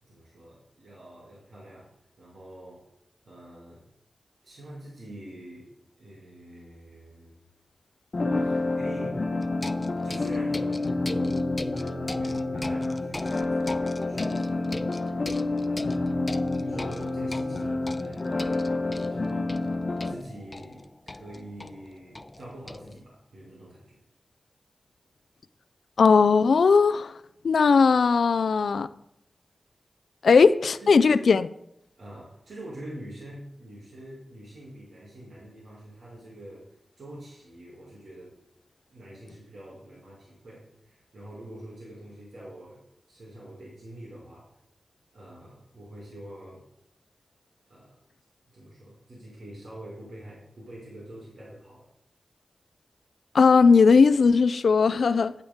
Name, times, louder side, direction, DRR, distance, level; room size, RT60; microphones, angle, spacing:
voice 1, 0.0-2.9 3.2-3.8 4.4-5.7 6.0-7.4 8.3-9.3 10.0-11.8 12.1-15.3 15.7-24.0 30.8-31.3 32.0-38.4 38.9-44.6 45.1-46.7 47.7-48.0 48.5-51.9, right 1 dB, 80° right, 2.5 m, -45 dB
sound 1, 8.1-20.1, left 2 dB, 55° left, 0.9 m, -28 dB
sound 2, 9.4-23.0, left 2 dB, 30° left, 0.6 m, -40 dB
voice 2, 26.0-27.1 27.4-28.9 30.2-31.5 53.3-55.3, left 5 dB, 85° left, 0.3 m, -18 dB
8.9 x 8.7 x 3.6 m
cardioid pair, 50°, 0 cm